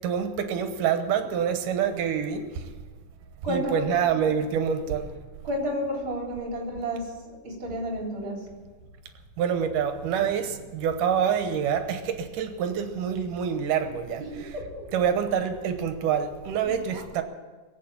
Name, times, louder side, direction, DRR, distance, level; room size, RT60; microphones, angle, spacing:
voice 1, 0.0-2.4 3.5-5.1 9.4-14.5 14.9-17.2, right 8 dB, 85° right, 2.7 m, -26 dB
voice 2, 3.4-3.9 4.1-4.3 5.4-7.0 7.4-8.4 14.2-14.3 14.5-14.8 16.6-17.0, equal, 40° right, 4.3 m, -31 dB
22.0 x 8.5 x 7.4 m
omnidirectional pair, 3.7 m